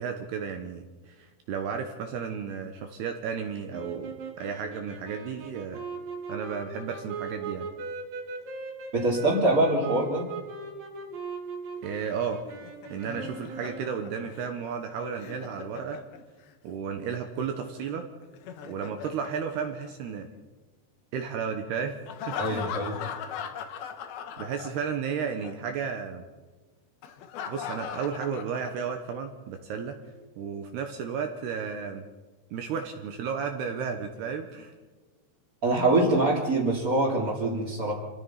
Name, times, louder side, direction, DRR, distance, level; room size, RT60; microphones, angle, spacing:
voice 1, 0.0-5.8 6.3-7.7 11.8-12.4 12.9-16.0 16.6-18.1 18.7-20.3 21.1-22.0 22.3-22.7 24.4-26.2 27.5-30.0 30.4-32.0 32.5-34.7, right 6 dB, 70° right, 5 dB, 2.7 m, -33 dB
sound 1, 3.7-14.2, right 4 dB, 50° right, 3.6 m, -39 dB
voice 2, 8.9-10.2 22.4-23.0 35.6-37.9, right 2 dB, 20° right, -7 dB, 2.6 m, -24 dB
Laughter, 12.5-16.5 18.2-20.4 22.1-25.1 25.4-25.5 27.0-29.1, left 8 dB, 65° left, 2.6 m, -39 dB
27.0 x 17.5 x 5.8 m, 1.3 s
omnidirectional pair, 5.9 m